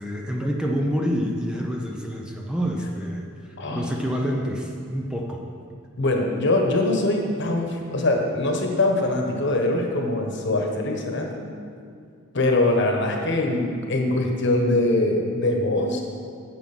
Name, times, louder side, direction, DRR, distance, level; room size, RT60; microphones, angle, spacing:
voice 1, 0.0-3.3 3.7-5.4, equal, 5° right, 0 dB, 0.7 m, -27 dB
voice 2, 3.6-4.4 6.0-11.5 12.3-16.0, left 2 dB, 60° left, 2 dB, 1.4 m, -23 dB
9.0 x 7.6 x 6.1 m, 2.2 s
head